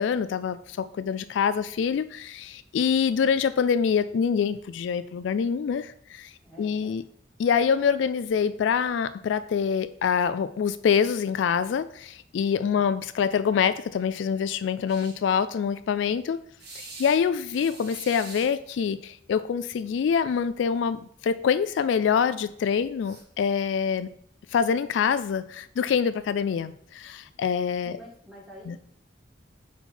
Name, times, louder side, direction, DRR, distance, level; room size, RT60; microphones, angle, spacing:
voice 1, 0.0-6.3 6.6-7.0 7.4-16.4 17.0-24.1 24.5-28.0 28.7-28.8, left 7 dB, 80° left, 13 dB, 0.3 m, -25 dB
voice 2, 6.4-7.0 12.6-12.9 27.8-28.8, equal, ahead, -5 dB, 1.7 m, -48 dB
sound 1, 14.9-15.2 16.6-17.2 17.5-18.5 19.9-20.0 20.3-20.5 23.0-23.2, right 3 dB, 55° right, 1.4 m, -44 dB
4.4 x 4.2 x 5.7 m, 0.64 s
head